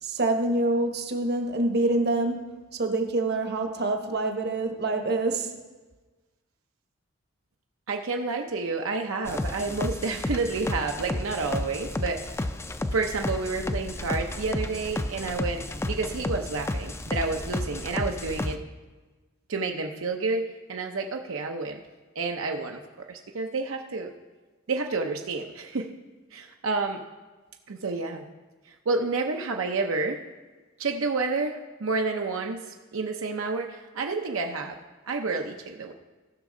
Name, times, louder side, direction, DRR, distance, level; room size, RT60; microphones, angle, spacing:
voice 1, 0.0-5.5, right 2 dB, 55° right, 5 dB, 1.0 m, -26 dB
voice 2, 7.9-12.4 12.9-18.6 19.5-21.8 22.1-22.8 23.1-24.1 24.7-25.9 26.3-27.0 27.7-28.3 28.7-30.2 30.8-34.7 35.0-35.9, right 3 dB, 80° right, 3 dB, 0.7 m, -30 dB
sound 1, 9.3-18.5, left 2 dB, 15° left, 0.3 m, -32 dB
16.0 x 6.2 x 3.8 m, 1.3 s
head